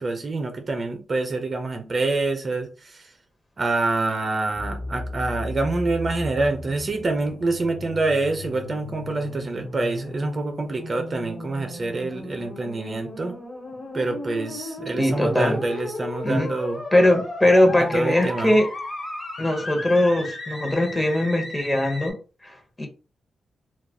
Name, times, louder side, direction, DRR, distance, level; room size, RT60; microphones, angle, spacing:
voice 1, 0.0-3.1 3.6-13.4 13.9-16.8 17.9-18.6, right 2 dB, 40° right, 0.5 m, -26 dB
sound 1, 4.5-22.1, left 1 dB, 35° left, 1.2 m, -35 dB
voice 2, 15.0-15.6 16.2-16.5 16.9-18.7 19.4-22.2 22.4-22.9, left 1 dB, 20° left, 0.8 m, -20 dB
2.3 x 2.3 x 3.5 m
cardioid pair, 75°, 0 cm